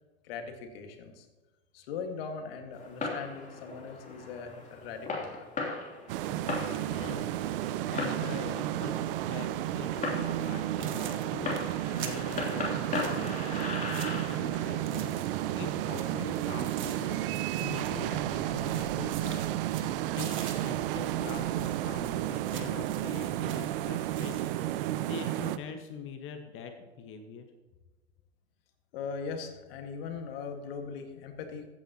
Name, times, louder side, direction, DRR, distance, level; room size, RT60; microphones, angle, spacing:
voice 1, 0.2-1.3 1.7-5.5 28.9-31.7, left 5 dB, 60° left, 5 dB, 1.8 m, -40 dB
Fireworks, 2.7-17.6, left 3 dB, 25° left, 2.9 m, -39 dB
sound 1, 6.1-25.6, right 13 dB, 60° right, 0.7 m, -32 dB
voice 2, 6.7-7.4 7.7-9.5 9.7-27.5, left 6 dB, 40° left, 5 dB, 1.4 m, -44 dB
sound 2, 10.3-10.5 10.8-15.6 15.8-18.3 18.6-24.5, right 9 dB, 35° right, 1.4 m, -47 dB
15.0 x 8.9 x 2.9 m, 1.2 s
hypercardioid pair, 90°, 33 cm